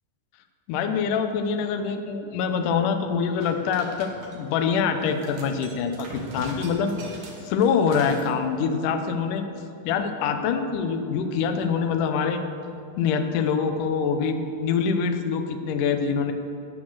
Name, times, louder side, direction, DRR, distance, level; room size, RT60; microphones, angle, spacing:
voice 1, 0.7-6.9 7.4-9.4 9.8-12.4 13.0-16.3, left 6 dB, 90° left, 6 dB, 1.8 m, -25 dB
sound 1, 3.4-4.6 5.0-8.3, right 3 dB, 55° right, 2.1 m, -42 dB
18.5 x 6.3 x 6.3 m, 2.7 s
omnidirectional pair, 4.8 m